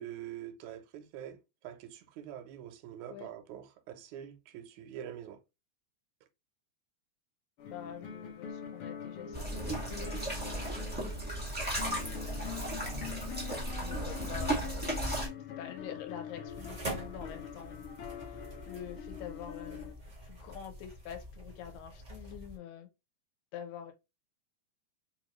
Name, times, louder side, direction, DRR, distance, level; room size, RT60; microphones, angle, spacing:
voice 1, 0.0-1.4 1.6-5.4, right 10 dB, 80° right, 1.9 m, -45 dB
voice 2, 7.6-10.9 11.8-12.9 13.8-19.9 20.2-22.9 23.5-23.9, left 9 dB, 85° left, 2.0 m, -47 dB
sound 1, 7.6-19.9, left 8 dB, 65° left, 1.3 m, -44 dB
sound 2, 9.3-15.3, right 1 dB, 10° right, 0.6 m, -35 dB
sound 3, 16.5-22.6, right 1 dB, 60° right, 0.4 m, -45 dB
4.6 x 2.6 x 3.0 m
omnidirectional pair, 3.3 m